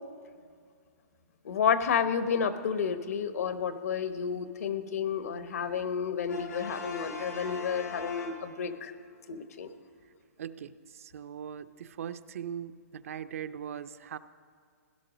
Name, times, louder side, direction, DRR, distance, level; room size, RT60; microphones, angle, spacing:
voice 1, 1.4-8.9 9.3-9.7, left 7 dB, 65° left, 10 dB, 1.0 m, -30 dB
Brass instrument, 6.3-8.9, left 4 dB, 85° left, 3.1 m, -41 dB
voice 2, 10.4-14.2, right 8 dB, 60° right, 12 dB, 0.6 m, -40 dB
17.0 x 11.0 x 5.1 m, 2.1 s
hypercardioid pair, 165°, 9 cm